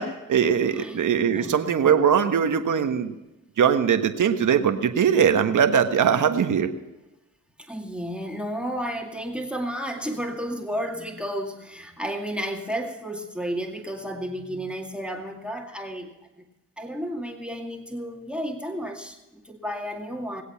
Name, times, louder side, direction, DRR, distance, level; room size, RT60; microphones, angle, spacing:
voice 1, 0.0-3.1 3.6-6.7, right 7 dB, 65° right, 7 dB, 1.4 m, -21 dB
voice 2, 0.6-1.7 7.6-16.1 16.8-20.4, equal, 5° right, 2 dB, 2.2 m, -32 dB
20.5 x 8.1 x 5.8 m, 1.0 s
cardioid pair, 60°, 34 cm